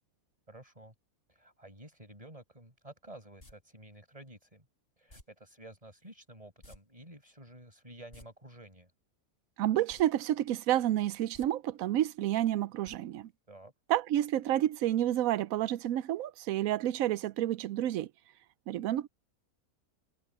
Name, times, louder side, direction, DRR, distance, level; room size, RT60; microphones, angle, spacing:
voice 1, 0.5-0.9 1.3-4.7 5.0-8.9 13.5-13.7, right 1 dB, 25° right, 6.7 m, -52 dB
sound 1, 3.4-3.5 5.1-5.2 6.6-6.8 7.0-7.1 8.0-8.2 9.9-10.0 10.4-10.5 11.2-11.5 12.8-13.0 13.3-13.4, left 1 dB, 40° left, 6.0 m, -53 dB
voice 2, 9.6-13.3 13.9-18.1 18.7-19.1, right 12 dB, 75° right, 1.0 m, -30 dB
omnidirectional pair, 1.5 m